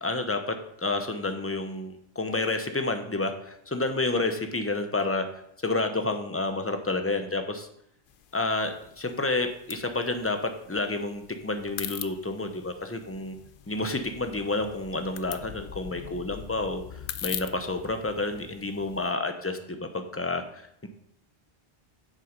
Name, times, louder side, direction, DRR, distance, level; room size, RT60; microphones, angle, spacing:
voice 1, 0.0-5.3 5.6-7.7 8.3-13.4 13.7-16.8 17.2-20.9, left 2 dB, 15° left, 6 dB, 0.8 m, -30 dB
sound 1, 8.1-19.1, left 10 dB, 65° left, 0.7 m, -42 dB
7.6 x 6.4 x 5.2 m, 0.72 s
omnidirectional pair, 1.0 m